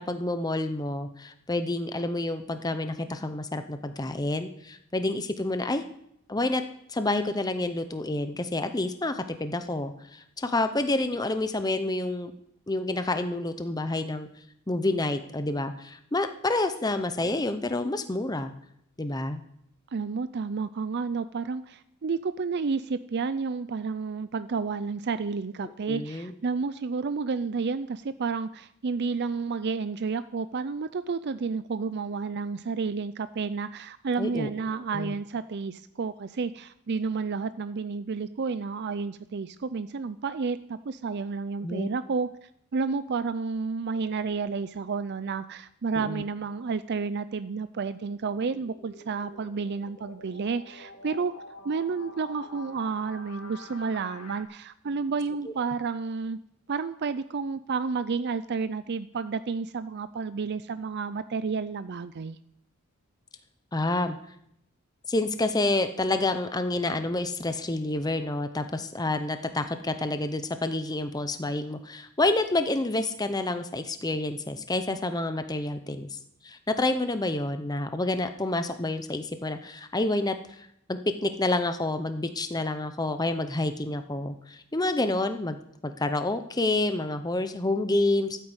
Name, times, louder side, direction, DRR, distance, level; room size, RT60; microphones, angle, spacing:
voice 1, 0.0-5.8 6.3-6.6 6.9-12.3 12.7-14.3 14.7-18.5 19.0-19.4 25.8-26.3 34.2-34.5 34.9-35.1 41.6-41.9 46.0-46.2 55.5-55.6 63.7-64.2 65.1-85.6 85.8-88.4, left 2 dB, 15° left, 9 dB, 0.7 m, -28 dB
voice 2, 19.9-51.3 51.6-56.4 56.7-62.4, right 5 dB, 50° right, 13 dB, 0.5 m, -31 dB
sound 1, 47.8-54.4, left 2 dB, 90° left, 2.4 m, -47 dB
13.5 x 9.2 x 8.0 m, 0.74 s
head